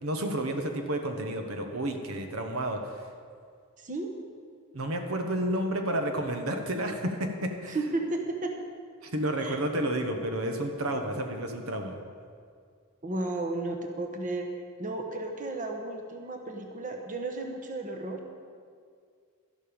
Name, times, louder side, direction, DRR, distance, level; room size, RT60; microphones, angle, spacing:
voice 1, 0.0-3.0 4.7-7.8 9.0-11.9, right 1 dB, 75° right, 4 dB, 1.2 m, -31 dB
voice 2, 3.8-4.1 7.7-8.5 9.4-9.6 13.0-14.5 14.8-18.2, right 2 dB, 40° right, 3 dB, 1.2 m, -33 dB
12.5 x 12.0 x 5.3 m, 2.1 s
head